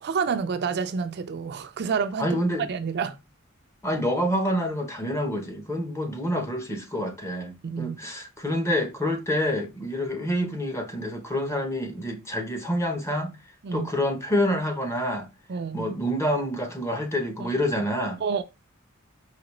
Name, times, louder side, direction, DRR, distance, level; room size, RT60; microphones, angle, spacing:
voice 1, 0.0-2.3 2.7-3.2 7.6-8.0 13.6-13.9 15.5-15.9 18.2-18.4, right 6 dB, 50° right, 0.4 m, -28 dB
voice 2, 2.2-2.7 3.8-13.4 13.7-15.3 15.7-18.2, equal, 15° left, 0.8 m, -27 dB
4.9 x 2.9 x 3.1 m
head